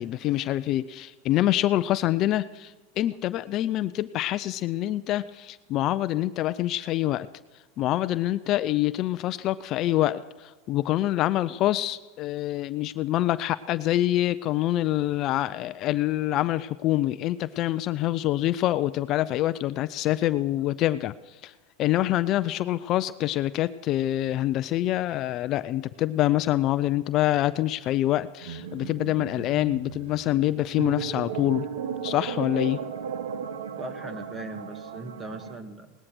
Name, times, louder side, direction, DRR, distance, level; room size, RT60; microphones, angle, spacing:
voice 1, 0.0-7.3 7.8-21.5 21.8-31.7 32.0-32.8, left 14 dB, 40° left, 14 dB, 0.5 m, -26 dB
sound 1, 28.4-35.6, right 7 dB, 90° right, 1.2 m, -35 dB
voice 2, 33.8-35.9, right 2 dB, 20° right, 8 dB, 1.7 m, -39 dB
18.5 x 12.5 x 6.1 m, 1.3 s
supercardioid pair, 135°, 0 cm